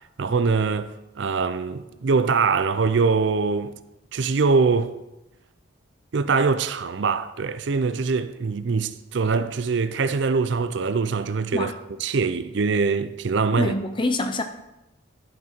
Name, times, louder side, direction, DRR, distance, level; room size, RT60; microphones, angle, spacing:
voice 1, 0.2-0.9 1.2-3.7 4.1-4.9 6.1-11.7 12.0-13.7, right 4 dB, 60° right, 0.5 m, -23 dB
voice 2, 13.6-14.4, left 2 dB, 25° left, 0.6 m, -25 dB
11.0 x 6.1 x 4.4 m
head